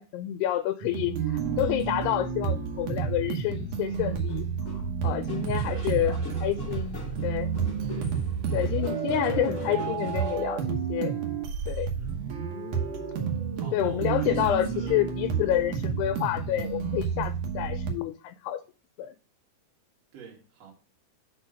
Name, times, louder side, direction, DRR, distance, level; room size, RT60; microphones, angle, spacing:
voice 1, 0.0-4.5 4.7-6.2 6.4-7.5 8.5-11.1 11.7-11.9 13.7-18.6 19.0-19.2, left 12 dB, 85° left, 2.6 m, -29 dB
sound 1, 0.8-17.9, right 6 dB, 80° right, 1.4 m, -30 dB
sound 2, 4.3-10.4, left 2 dB, 30° left, 1.4 m, -41 dB
voice 2, 5.6-7.3 7.9-8.2 9.2-10.6 12.0-12.3 13.6-15.0 20.1-20.7, right 6 dB, 50° right, 2.4 m, -45 dB
5.6 x 4.5 x 6.2 m
omnidirectional pair, 4.7 m